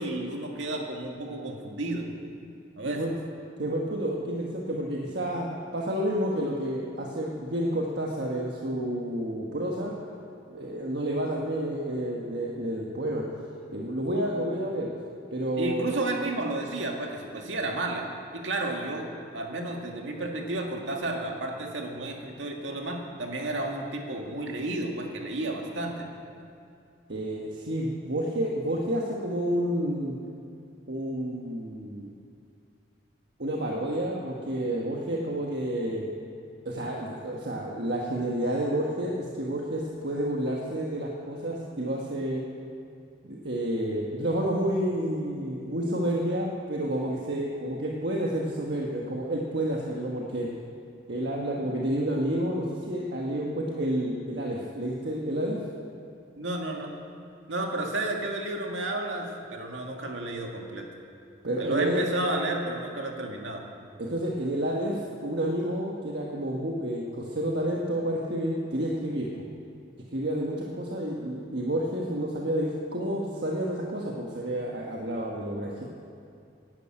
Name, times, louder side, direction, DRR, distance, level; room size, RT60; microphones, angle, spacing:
voice 1, 0.0-2.1 2.8-3.0 15.6-18.1 18.3-19.1 19.3-26.1 56.4-56.9 57.5-60.9 61.6-63.6, right 2 dB, 80° right, 1 dB, 2.0 m, -32 dB
voice 2, 3.6-9.9 10.5-13.2 13.7-14.9 15.3-15.9 27.1-30.2 30.9-32.1 33.4-36.0 36.6-42.4 43.2-50.5 51.1-55.6 61.4-62.0 64.0-69.5 70.1-75.8, right 1 dB, 60° right, -2 dB, 1.4 m, -30 dB
12.0 x 11.0 x 8.9 m, 2.5 s
head